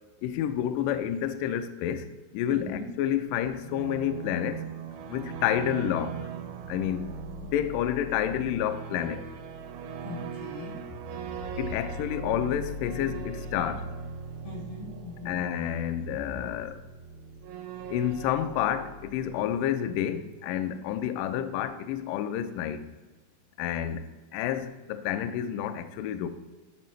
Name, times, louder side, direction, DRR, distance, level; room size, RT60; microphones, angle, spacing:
voice 1, 0.2-4.7 5.1-6.3 6.7-9.2 11.6-13.9 15.3-16.8 17.9-22.9 23.6-26.3, left 10 dB, 90° left, 1.9 m, -29 dB
voice 2, 2.5-2.9 10.0-10.8 14.4-15.4, left 3 dB, 65° left, 4.3 m, -40 dB
sound 1, 3.4-20.1, right 4 dB, 85° right, 2.6 m, -40 dB
9.4 x 5.5 x 3.1 m
omnidirectional pair, 4.5 m